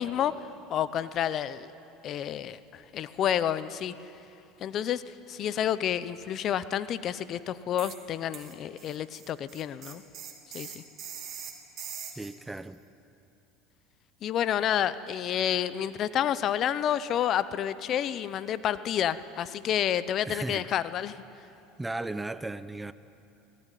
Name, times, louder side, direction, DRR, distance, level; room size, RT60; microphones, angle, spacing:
voice 1, 0.0-1.7 2.0-3.9 4.6-10.0 10.5-10.8 14.2-21.2, left 10 dB, 50° left, 15 dB, 0.9 m, -29 dB
sound 1, 7.8-8.0 8.3-12.3, right 8 dB, 45° right, 3.5 m, -42 dB
voice 2, 12.2-12.8 20.3-20.7 21.8-22.9, right 2 dB, 10° right, 14 dB, 0.8 m, -35 dB
24.5 x 17.5 x 9.3 m, 2.8 s
hypercardioid pair, 90°, 0 cm